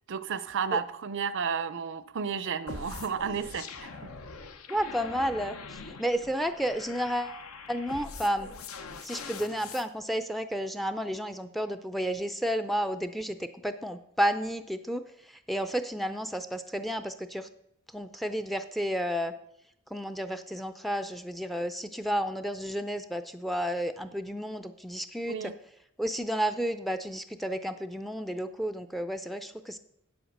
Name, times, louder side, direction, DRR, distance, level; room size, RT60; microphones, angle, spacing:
voice 1, 0.1-4.1 25.3-25.6, right 6 dB, 60° right, 14 dB, 0.6 m, -32 dB
sound 1, 2.7-9.9, left 4 dB, 75° left, 0.9 m, -43 dB
voice 2, 4.7-7.4 7.7-8.5 9.0-15.0 15.5-17.5 17.9-19.3 19.9-25.4 26.0-29.8, equal, ahead, 9 dB, 0.4 m, -31 dB
8.5 x 7.9 x 6.5 m, 0.80 s
head